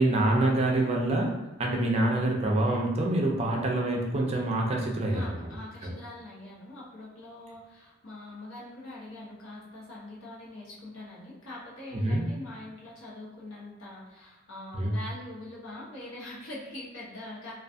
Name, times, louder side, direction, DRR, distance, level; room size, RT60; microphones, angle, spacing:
voice 1, 0.0-1.3 1.6-5.5 5.8-6.0 11.9-12.2 14.7-14.9, right 1 dB, 30° right, 0 dB, 0.4 m, -26 dB
voice 2, 5.1-17.5, left 1 dB, 75° left, -6 dB, 0.9 m, -43 dB
2.5 x 2.3 x 2.4 m, 1.1 s
head